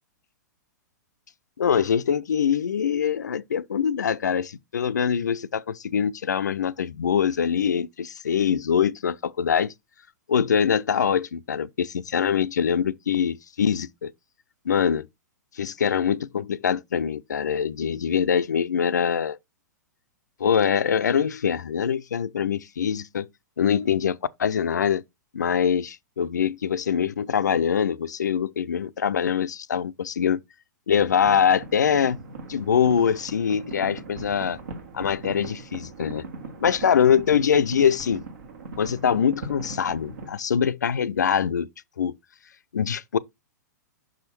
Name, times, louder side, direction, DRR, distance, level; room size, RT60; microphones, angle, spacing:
voice 1, 1.6-9.7 10.3-14.1 14.7-15.1 15.6-19.4 20.4-23.3 23.6-25.0 25.3-30.4 30.9-32.2 32.5-34.6 34.9-36.3 36.6-38.2 38.8-41.7 42.0-42.1 42.7-43.2, left 7 dB, 70° left, 0.4 m, -23 dB
sound 1, 30.9-40.3, right 3 dB, 65° right, 1.4 m, -39 dB
5.9 x 5.0 x 4.1 m
figure-of-eight pair, 105°, 10 cm